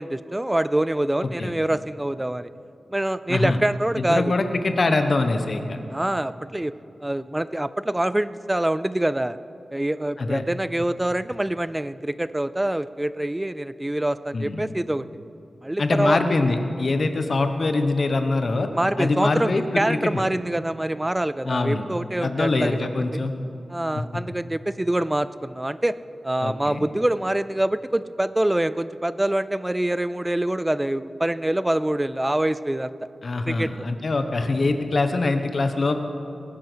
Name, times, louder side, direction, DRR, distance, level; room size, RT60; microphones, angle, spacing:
voice 1, 0.0-2.5 2.9-4.3 5.9-6.7 7.0-9.4 9.7-15.0 15.6-16.2 18.7-22.8 23.7-26.0 26.2-32.9 33.5-33.7, right 1 dB, 10° right, 15 dB, 0.3 m, -25 dB
voice 2, 1.2-1.5 3.3-3.6 4.0-5.8 10.2-10.4 14.3-14.6 15.8-18.7 19.0-19.6 19.9-20.1 21.4-21.9 22.2-23.3 26.4-26.8 33.2-36.0, left 3 dB, 45° left, 7 dB, 1.0 m, -23 dB
19.5 x 9.1 x 6.3 m, 2.7 s
wide cardioid pair, 135°, 0 cm